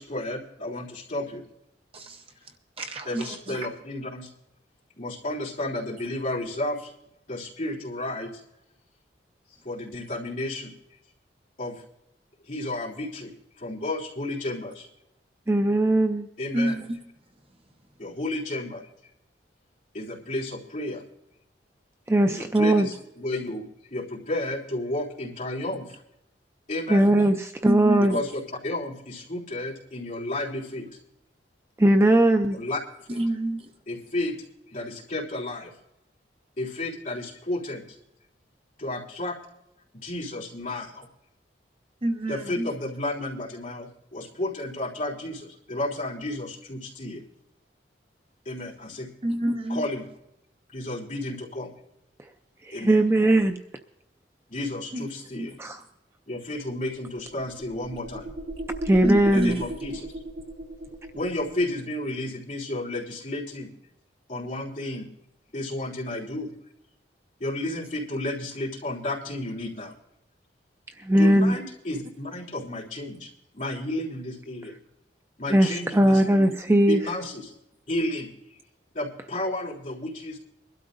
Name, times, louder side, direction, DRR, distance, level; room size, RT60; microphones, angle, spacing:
voice 1, 0.0-1.4 3.0-4.3 5.0-6.9 7.3-8.4 9.6-10.7 11.6-11.8 12.4-13.3 13.6-14.9 16.4-16.8 18.0-18.8 19.9-21.0 22.3-26.0 26.7-27.1 28.0-30.9 32.5-32.8 33.1-33.2 33.9-34.3 34.7-35.7 36.6-37.8 38.8-39.4 39.9-41.1 42.3-47.2 48.4-49.1 49.7-50.1 50.7-51.7 52.7-53.0 54.5-55.5 56.3-58.3 59.2-60.1 61.1-63.7 64.3-65.1 65.5-66.5 67.4-69.9 71.2-74.7 75.4-76.5 76.9-77.5 77.9-78.3 78.9-80.4, left 1 dB, 45° left, 3.4 m, -32 dB
voice 2, 2.8-3.7 16.5-17.0 27.7-28.2 33.1-33.7 42.0-42.7 49.2-49.8 54.9-55.0 55.3-55.6 59.0-59.7, right 1 dB, 30° right, 0.9 m, -28 dB
voice 3, 15.5-16.3 22.1-22.9 26.9-28.2 31.8-32.6 52.7-53.6 55.6-55.8 58.9-59.6 71.0-71.6 75.5-77.0, right 1 dB, 15° right, 0.4 m, -19 dB
sound 1, 56.8-61.7, right 1 dB, 70° right, 1.3 m, -36 dB
23.0 x 12.5 x 2.6 m
head